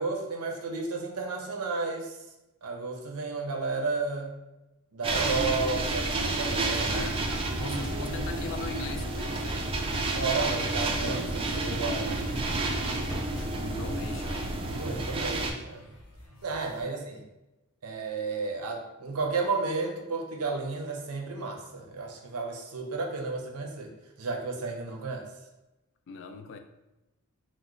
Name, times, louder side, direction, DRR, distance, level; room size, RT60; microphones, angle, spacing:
voice 1, 0.0-2.1 2.6-4.4 4.9-7.0 7.6-8.2 10.2-12.9 14.8-15.9 16.4-17.2 17.8-23.9 24.2-25.3, right 4 dB, 80° right, 2 dB, 0.6 m, -33 dB
sound 1, 5.0-15.5, right 2 dB, 25° right, 0.3 m, -30 dB
voice 2, 6.8-10.1 13.2-14.6 26.1-26.6, left 5 dB, 55° left, 6 dB, 0.3 m, -41 dB
sound 2, 7.6-9.7 10.2-10.3 10.7-13.5, left 1 dB, ahead, 0.8 m, -49 dB
sound 3, 7.8-16.8, left 1 dB, 80° left, 0.9 m, -51 dB
3.0 x 2.1 x 3.7 m, 0.99 s
head